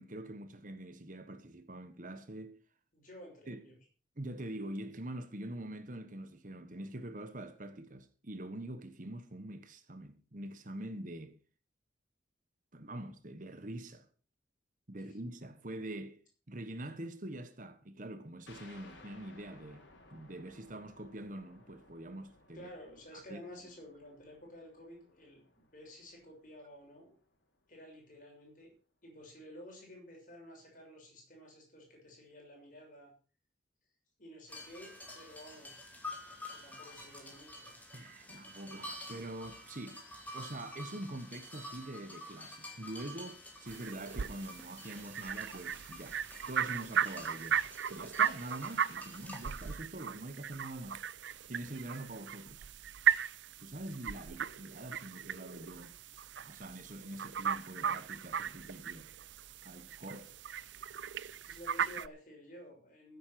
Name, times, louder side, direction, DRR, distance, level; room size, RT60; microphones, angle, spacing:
voice 1, 0.0-2.6 3.5-3.6 4.2-11.4 12.7-14.1 14.9-16.2 16.5-19.8 20.1-22.7 23.1-23.4 37.9-40.0 40.3-46.2 46.5-47.6 47.9-51.0 51.5-52.6 53.6-55.9 56.4-59.1 59.6-60.3, right 1 dB, 45° right, 1.3 m, -44 dB
voice 2, 2.9-3.8 15.1-15.2 22.5-27.1 27.7-28.7 29.0-33.1 34.2-35.8 36.5-37.7 61.5-63.2, left 1 dB, 45° left, 6.5 m, -52 dB
sound 1, 18.5-27.7, left 2 dB, 80° left, 3.6 m, -61 dB
sound 2, 34.5-49.7, left 1 dB, 10° left, 2.8 m, -49 dB
sound 3, 43.7-62.1, right 8 dB, 75° right, 0.5 m, -37 dB
15.5 x 8.3 x 6.0 m
head